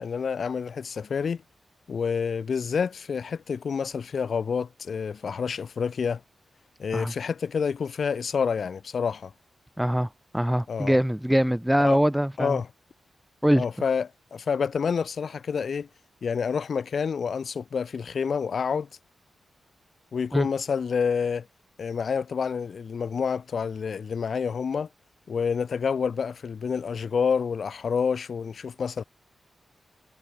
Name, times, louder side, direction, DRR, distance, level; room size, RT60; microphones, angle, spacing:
voice 1, 0.0-1.4 1.9-6.2 6.8-9.3 10.7-11.0 11.8-12.0 12.4-12.7 13.5-15.9 16.2-18.9 20.1-21.5 21.8-24.9 25.3-29.0, left 6 dB, 65° left, 5.9 m, -28 dB
voice 2, 9.8-10.1 10.3-12.6 13.4-13.6 20.3-20.5, equal, 5° right, 2.6 m, -23 dB
cardioid pair, 75°, 0 cm